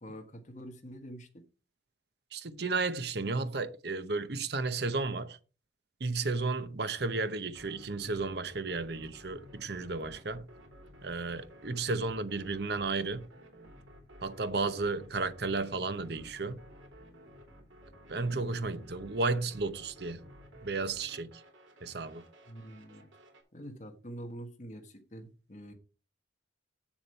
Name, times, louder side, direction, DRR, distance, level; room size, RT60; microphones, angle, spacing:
voice 1, 0.0-1.4 18.7-18.9 22.5-23.1 23.5-25.7, equal, 40° left, 1.5 m, -46 dB
voice 2, 2.3-5.4 6.0-10.5 11.0-13.3 14.2-16.6 18.1-20.2 20.6-21.4 21.8-22.2, right 3 dB, 55° right, 0.9 m, -33 dB
sound 1, 7.5-23.4, equal, 85° right, 3.1 m, -54 dB
7.3 x 7.1 x 4.5 m
head